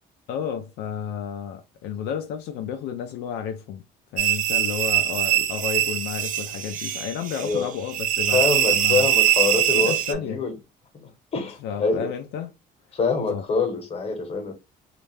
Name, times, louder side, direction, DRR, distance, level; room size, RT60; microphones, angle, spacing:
voice 1, 0.3-3.8 4.1-9.1 9.7-10.4 11.6-12.5 13.3-13.4, left 8 dB, 80° left, 0.4 m, -32 dB
sound 1, 4.2-10.1, right 13 dB, 50° right, 0.4 m, -23 dB
voice 2, 8.3-10.5 11.3-12.1 12.9-14.5, left 4 dB, 35° left, 1.0 m, -25 dB
2.3 x 2.0 x 3.1 m
cardioid pair, 110°, 17 cm